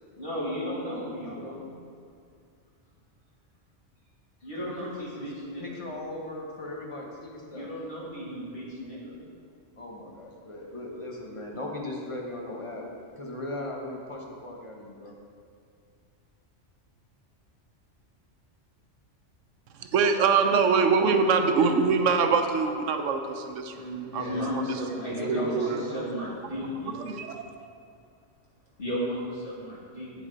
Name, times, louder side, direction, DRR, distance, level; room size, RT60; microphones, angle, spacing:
voice 1, 0.2-1.7 4.4-5.8 7.5-9.2 23.7-27.0 28.8-30.3, equal, 50° left, -7 dB, 2.7 m, -34 dB
voice 2, 4.5-5.3 5.6-7.7 9.8-12.9 13.1-15.1 24.1-24.5 25.2-26.3, left 1 dB, 25° left, -1 dB, 1.2 m, -38 dB
voice 3, 19.8-24.6 25.3-25.8 27.0-27.4, right 5 dB, 85° right, 6 dB, 1.0 m, -24 dB
8.6 x 8.0 x 3.9 m, 2.3 s
omnidirectional pair, 1.2 m